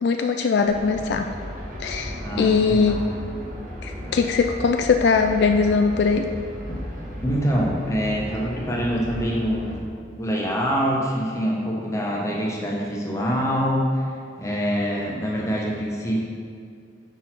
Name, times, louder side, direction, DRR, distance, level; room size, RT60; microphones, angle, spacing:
voice 1, 0.0-1.3 1.8-3.1 3.8-6.3, left 5 dB, 65° left, 5 dB, 0.3 m, -21 dB
sound 1, 0.7-9.8, equal, 45° right, 1.2 m, -35 dB
voice 2, 2.2-3.0 6.7-6.8 7.2-9.9 10.2-14.1 14.4-16.1, equal, 15° left, -2 dB, 0.9 m, -25 dB
6.1 x 5.4 x 4.4 m, 2.3 s
head